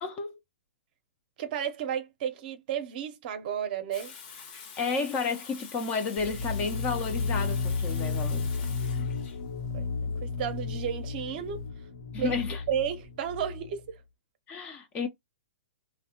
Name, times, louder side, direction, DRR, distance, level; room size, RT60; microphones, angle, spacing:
voice 1, 0.0-0.4 4.8-9.1 12.1-12.6 14.5-15.1, left 4 dB, 20° left, 0.3 m, -32 dB
voice 2, 1.4-4.2 9.7-9.9 10.2-11.6 12.2-12.4 12.7-14.0, right 8 dB, 40° right, 0.6 m, -32 dB
Water tap faucet / Sink (filling or washing), 3.9-11.6, left 6 dB, 35° left, 0.7 m, -46 dB
sound 1, 6.2-13.8, left 4 dB, 75° left, 0.9 m, -33 dB
2.7 x 2.0 x 2.7 m
hypercardioid pair, 150°, 7 cm